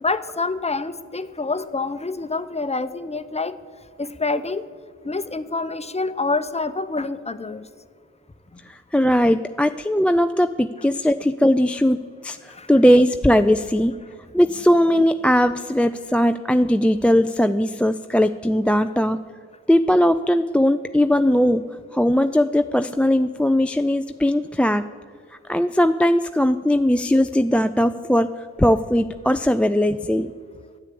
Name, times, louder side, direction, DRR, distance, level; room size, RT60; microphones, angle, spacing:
voice 1, 0.0-3.5 4.0-4.7 5.0-7.7 12.5-12.7, left 3 dB, 20° left, 12 dB, 0.8 m, -27 dB
voice 2, 8.7-13.9 14.3-19.2 19.7-21.6 21.9-24.9 25.5-28.3 28.6-30.3, equal, 5° left, 8 dB, 0.4 m, -19 dB
10.0 x 8.3 x 8.5 m, 2.1 s
hypercardioid pair, 40°, 33 cm